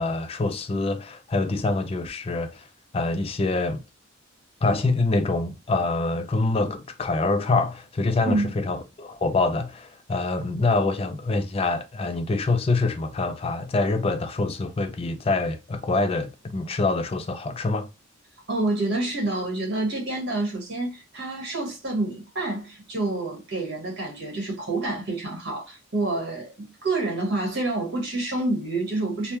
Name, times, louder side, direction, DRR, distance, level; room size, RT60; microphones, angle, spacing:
voice 1, 0.0-2.7 2.9-3.8 4.6-17.9, left 3 dB, 25° left, 0.3 m, -25 dB
voice 2, 18.5-29.4, right 2 dB, 55° right, 1.3 m, -28 dB
3.3 x 2.1 x 2.7 m
head